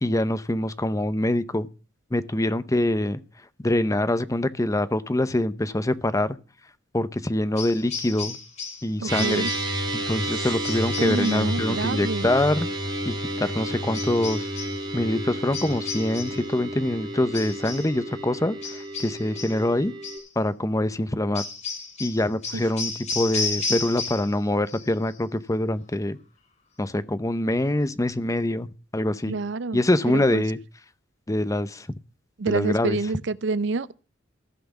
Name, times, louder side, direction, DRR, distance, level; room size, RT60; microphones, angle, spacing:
voice 1, 0.0-1.7 2.1-3.2 3.6-6.4 6.9-8.4 8.8-9.5 9.9-12.7 13.0-14.5 14.9-19.9 20.4-21.4 22.0-26.2 26.8-28.7 28.9-29.4 29.7-30.6 31.3-31.9 32.5-33.0, left 1 dB, 15° left, 0.7 m, -24 dB
sound 1, 7.6-8.9 9.2-9.8 10.6-11.5 13.9-14.8 15.5-16.5 17.3-18.0 18.6-19.6 20.0-20.3 21.3-24.4 24.7-25.2, left 4 dB, 35° left, 2.7 m, -33 dB
voice 2, 9.0-9.5 11.0-12.3 22.5-22.6 29.3-29.8 30.1-30.4 32.4-33.9, right 3 dB, 65° right, 0.5 m, -27 dB
sound 2, 9.1-20.2, right 1 dB, 25° right, 3.6 m, -31 dB
15.0 x 5.9 x 7.2 m
head